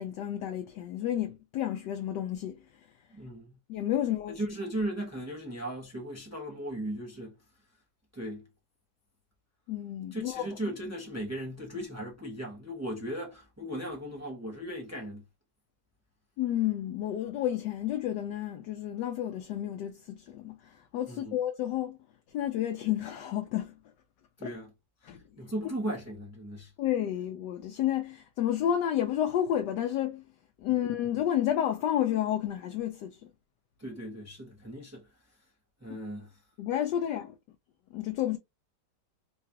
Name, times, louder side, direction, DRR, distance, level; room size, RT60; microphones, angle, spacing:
voice 1, 0.0-2.9 3.7-4.4 9.7-10.5 16.4-22.0 22.3-23.8 24.4-24.5 25.0-25.2 26.8-30.2 30.6-33.3 35.9-36.0 36.6-37.4 37.9-38.4, left 11 dB, 75° left, 1.1 m, -31 dB
voice 2, 3.1-3.5 4.4-7.3 8.1-8.5 10.1-15.2 21.1-21.4 24.4-24.7 25.4-26.7 33.8-35.1 35.8-36.3, right 1 dB, 25° right, 0.3 m, -37 dB
3.9 x 2.3 x 2.7 m
omnidirectional pair, 2.1 m